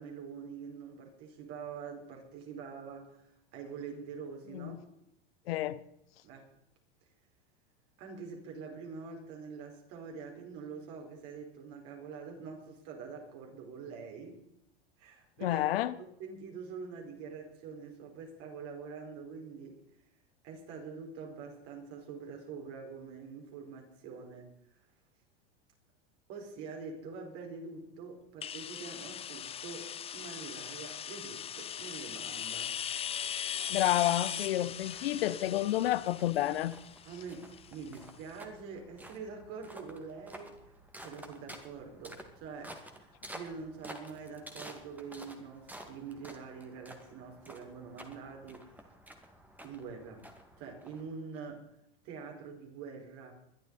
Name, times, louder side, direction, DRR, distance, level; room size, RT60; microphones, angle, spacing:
voice 1, 0.0-4.8 6.2-6.5 8.0-14.4 15.0-15.6 16.0-19.8 20.4-24.5 26.3-32.7 37.0-40.8 41.0-48.7 49.6-50.2 50.6-51.7 52.0-53.3, right 5 dB, 55° right, 1 dB, 5.2 m, -45 dB
voice 2, 5.5-5.8 15.4-15.9 33.7-36.7, left 14 dB, 80° left, 16 dB, 0.9 m, -30 dB
sound 1, 28.4-38.0, left 9 dB, 20° left, 0.5 m, -39 dB
sound 2, 33.7-51.4, right 1 dB, 5° right, 2.2 m, -52 dB
21.5 x 11.5 x 4.2 m, 0.79 s
hypercardioid pair, 115°, 30 cm